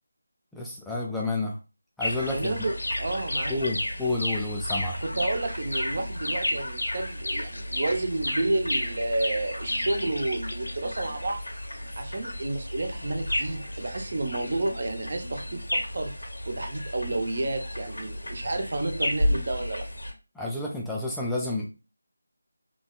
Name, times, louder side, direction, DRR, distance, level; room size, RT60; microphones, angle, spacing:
voice 1, 0.5-1.6 2.0-2.5 3.5-4.9 20.4-21.7, left 2 dB, ahead, -4 dB, 0.3 m, -30 dB
sound 1, 2.0-20.1, left 1 dB, 90° left, 1.0 m, -32 dB
voice 2, 2.3-3.6 5.0-11.4 12.0-16.1 16.5-19.9, right 2 dB, 50° right, 6 dB, 0.6 m, -30 dB
3.4 x 2.1 x 2.3 m, 0.30 s
figure-of-eight pair, 165°, 0 cm